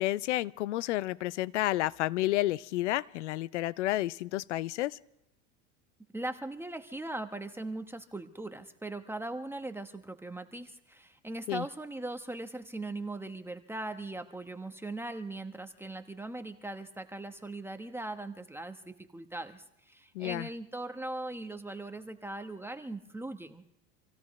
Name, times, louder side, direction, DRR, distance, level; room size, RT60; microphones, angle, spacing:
voice 1, 0.0-5.0 11.5-11.6 20.1-20.5, left 16 dB, 90° left, 20 dB, 0.6 m, -31 dB
voice 2, 6.1-23.7, right 2 dB, 5° right, 7 dB, 1.0 m, -40 dB
27.0 x 16.5 x 3.1 m, 0.81 s
supercardioid pair, 105°, 34 cm